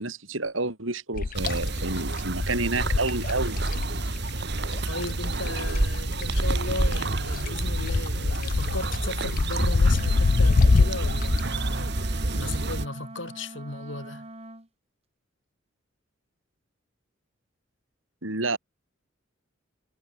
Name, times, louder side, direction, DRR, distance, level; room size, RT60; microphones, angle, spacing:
voice 1, 0.0-3.6 18.2-18.6, right 3 dB, 80° right, 4.3 m, -29 dB
sound 1, 1.1-6.0 6.2-11.4, left 3 dB, 45° left, 0.5 m, -25 dB
sound 2, 1.3-12.9, right 2 dB, 55° right, 2.0 m, -29 dB
voice 2, 4.9-14.3, left 2 dB, 70° left, 3.9 m, -36 dB
Wind instrument woodwind instrument, 9.8-14.7, right 1 dB, 30° right, 4.0 m, -42 dB
head